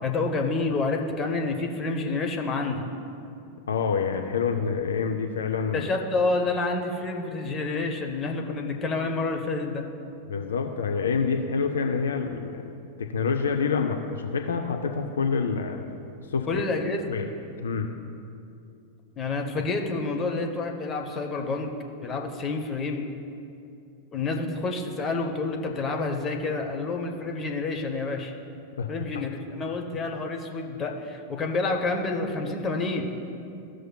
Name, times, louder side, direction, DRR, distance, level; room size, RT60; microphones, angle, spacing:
voice 1, 0.0-2.9 5.7-9.9 16.5-17.2 19.2-21.7 22.0-23.0 24.1-28.3 28.9-33.1, left 3 dB, 25° left, 2 dB, 0.9 m, -28 dB
voice 2, 3.7-5.9 10.3-12.6 13.0-15.8 16.3-16.5 17.1-17.3 17.6-17.9 28.8-28.9, left 5 dB, 65° left, 4 dB, 0.4 m, -27 dB
14.0 x 6.2 x 2.3 m, 2.6 s
figure-of-eight pair, 90°, 0 cm